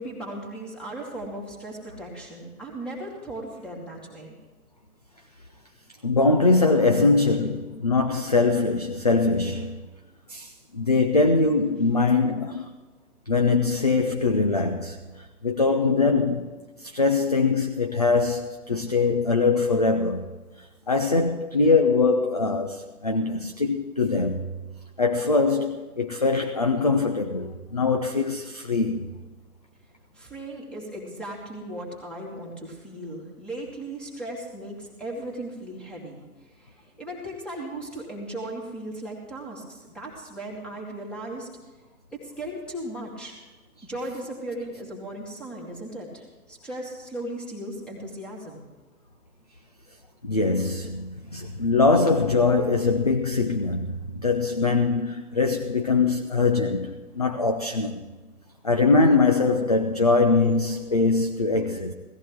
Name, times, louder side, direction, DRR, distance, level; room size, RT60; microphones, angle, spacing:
voice 1, 0.0-4.3 9.8-9.9 30.1-36.2 36.6-41.5 42.1-43.3 43.8-48.6, right 1 dB, ahead, 2.0 m, -37 dB
voice 2, 6.0-9.8 10.3-12.7 13.3-16.5 16.8-24.5 25.0-29.0 50.2-58.0 58.6-61.9, left 3 dB, 30° left, 0.4 m, -22 dB
17.0 x 14.0 x 3.6 m
figure-of-eight pair, 135°, 45 cm